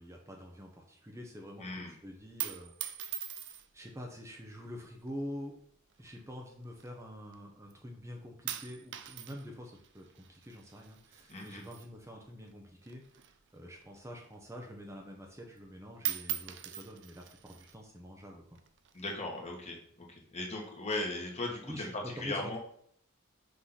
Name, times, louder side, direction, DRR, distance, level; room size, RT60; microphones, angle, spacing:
voice 1, 0.0-2.7 3.7-5.5 6.0-13.0 13.5-18.6 20.9-21.0 21.6-22.6, equal, 15° right, 0 dB, 0.9 m, -46 dB
voice 2, 1.6-1.9 11.3-11.6 18.9-21.9 22.2-22.6, left 2 dB, 30° left, -1 dB, 1.7 m, -38 dB
sound 1, 2.1-3.9 4.7-5.2 6.0-7.4 7.7-8.1 8.5-12.5 12.8-14.5 14.9-15.0 15.3-15.7 16.0-17.8 18.6-19.2, right 12 dB, 55° right, 0.6 m, -42 dB
6.1 x 3.8 x 5.7 m, 0.66 s
head